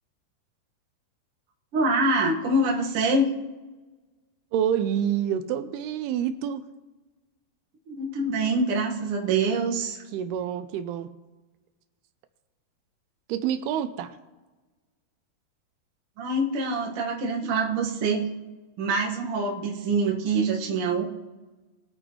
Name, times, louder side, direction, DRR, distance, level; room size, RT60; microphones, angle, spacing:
voice 1, 1.7-3.3 7.9-10.0 16.2-18.3 18.8-21.0, right 2 dB, 50° right, -1 dB, 1.8 m, -25 dB
voice 2, 4.5-6.6 10.1-11.1 13.3-14.1, right 9 dB, 85° right, 10 dB, 2.6 m, -27 dB
22.0 x 9.0 x 3.1 m, 1.2 s
omnidirectional pair, 4.6 m